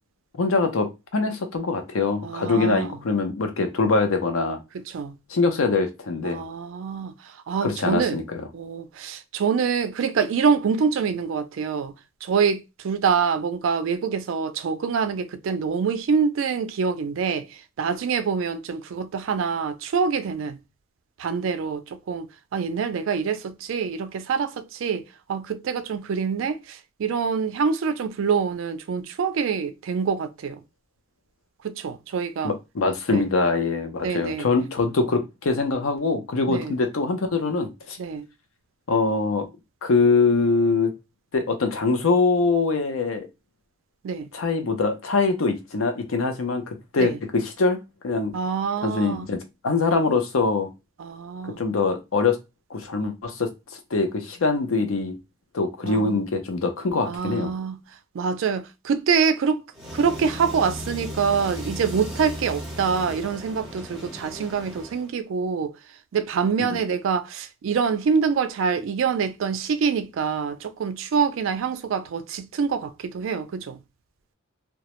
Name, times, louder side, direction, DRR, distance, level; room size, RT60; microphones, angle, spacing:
voice 1, 0.4-4.6 5.3-6.4 7.6-8.5 32.4-38.0 38.9-39.5 39.8-40.9 41.3-43.3 44.3-48.3 48.8-50.7 51.6-52.4 52.7-53.5 53.9-55.2 55.5-57.5 66.6-66.8, left 3 dB, 80° left, 0.5 m, -23 dB
voice 2, 2.2-3.0 4.7-5.2 6.2-7.1 7.5-8.2 8.5-11.9 12.2-20.6 21.2-22.3 22.5-30.6 31.6-32.5 33.1-33.2 34.0-34.5 36.5-36.7 38.0-38.3 44.0-44.3 47.0-47.2 48.3-49.3 51.0-51.6 55.8-56.2 57.1-57.8 58.1-59.6 59.9-65.8 66.1-73.8, right 6 dB, 70° right, 0.3 m, -25 dB
sound 1, 59.7-65.1, equal, 5° right, 0.7 m, -36 dB
2.2 x 2.0 x 2.9 m
head